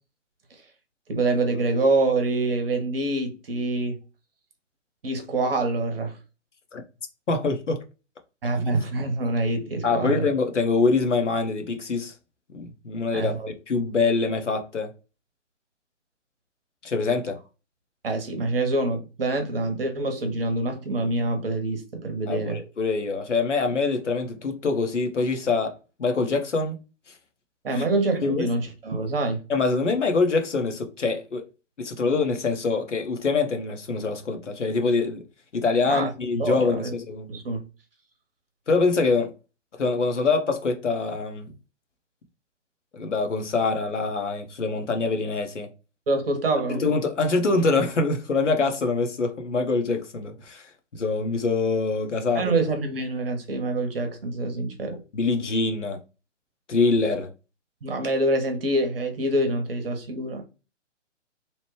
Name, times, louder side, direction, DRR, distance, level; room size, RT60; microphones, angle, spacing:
voice 1, 1.1-4.0 5.0-6.2 8.4-10.3 13.1-13.5 18.0-22.6 27.6-29.4 35.9-36.1 36.4-36.9 37.3-37.6 46.1-46.8 52.3-55.0 57.8-60.4, right 2 dB, 50° right, 0.8 m, -26 dB
voice 2, 7.3-7.8 8.6-8.7 9.8-12.1 12.5-13.4 13.7-14.9 16.8-17.4 22.3-26.8 27.7-27.9 28.2-28.5 29.5-31.4 31.8-35.2 35.5-37.3 38.7-39.3 39.8-41.5 42.9-45.7 46.7-52.5 54.9-56.0 56.7-57.3, left 4 dB, 70° left, 0.8 m, -24 dB
2.9 x 2.1 x 3.1 m
figure-of-eight pair, 125°, 37 cm